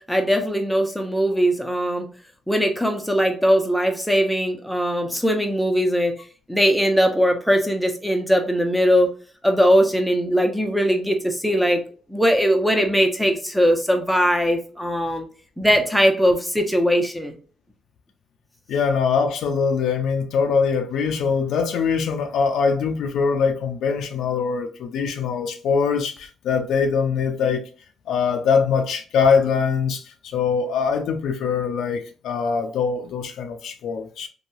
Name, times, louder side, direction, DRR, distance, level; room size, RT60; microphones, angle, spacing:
voice 1, 0.0-2.1 2.5-6.2 6.5-9.1 9.4-11.8 12.1-15.3 15.6-17.3, equal, ahead, 0.6 m, -20 dB
voice 2, 18.7-27.6 28.1-34.3, left 6 dB, 80° left, 0.5 m, -22 dB
3.0 x 2.3 x 2.6 m
cardioid pair, 90°, 0 cm